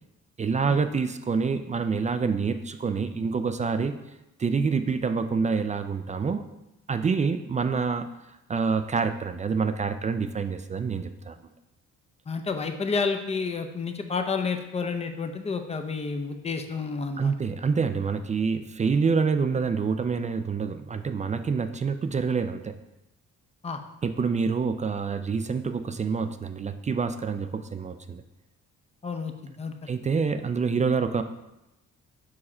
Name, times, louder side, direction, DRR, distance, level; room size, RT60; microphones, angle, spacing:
voice 1, 0.4-3.9 4.4-6.4 6.9-8.1 8.5-11.4 17.2-22.8 24.0-28.2 29.9-31.2, right 5 dB, 25° right, 9 dB, 0.3 m, -27 dB
voice 2, 12.3-17.3 23.6-23.8 29.0-29.9, left 4 dB, 20° left, 6 dB, 0.6 m, -30 dB
4.9 x 4.8 x 4.2 m, 0.94 s
cardioid pair, 90°, 30 cm